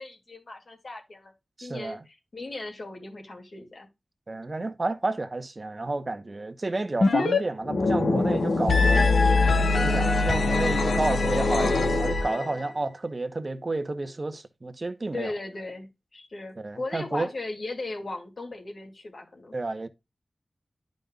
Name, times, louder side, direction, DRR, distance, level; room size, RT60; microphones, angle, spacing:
voice 1, 0.0-1.3 1.6-3.9 15.1-19.5, left 2 dB, 60° left, 2.6 m, -37 dB
voice 2, 1.6-2.0 4.3-9.1 9.8-15.3 16.6-17.3 19.5-19.9, right 2 dB, 40° right, 1.0 m, -31 dB
sound 1, 7.0-7.4 7.6-12.6, left 3 dB, 85° left, 1.2 m, -22 dB
12.0 x 5.3 x 2.4 m
wide cardioid pair, 90°, 0 cm